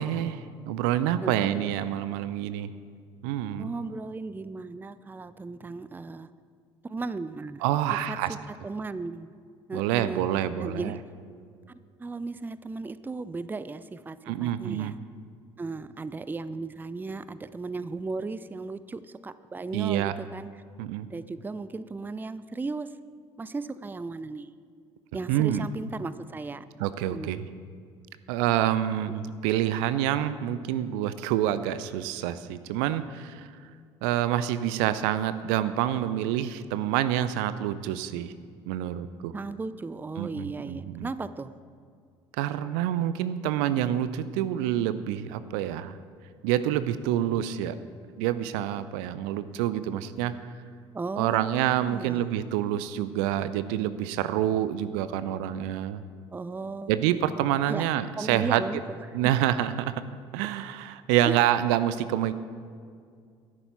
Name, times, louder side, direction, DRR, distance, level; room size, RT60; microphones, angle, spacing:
voice 1, 0.0-2.7 3.2-3.7 7.6-8.3 9.7-11.0 14.3-14.9 19.7-20.1 20.8-21.1 25.3-25.6 26.8-27.5 28.3-33.5 34.0-38.3 38.7-39.3 40.2-41.1 42.4-46.0 46.4-47.8 48.2-50.3 51.2-56.0 56.9-58.6 59.1-59.9 60.3-62.3, right 11 dB, 65° right, 14 dB, 0.5 m, -27 dB
voice 2, 1.2-1.6 3.6-6.3 6.8-7.6 7.9-8.4 8.6-9.3 9.7-10.3 10.6-11.0 12.0-15.0 15.6-20.5 21.1-22.9 23.4-24.5 25.1-26.6 27.1-27.4 39.3-41.6 50.9-52.3 56.3-56.9 57.7-57.8 58.2-59.3 61.2-61.4, right 3 dB, 15° right, 15 dB, 0.4 m, -36 dB
13.0 x 11.0 x 4.4 m, 2.2 s
figure-of-eight pair, 55°, 15 cm